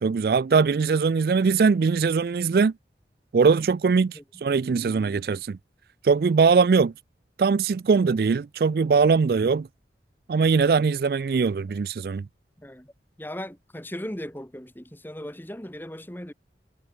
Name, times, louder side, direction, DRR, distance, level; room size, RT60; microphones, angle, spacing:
voice 1, 0.0-2.7 3.3-5.6 6.0-6.9 7.4-9.7 10.3-12.3, right 5 dB, 55° right, 0.4 m, -21 dB
voice 2, 12.6-12.9 13.2-16.3, equal, 10° left, 1.5 m, -37 dB
head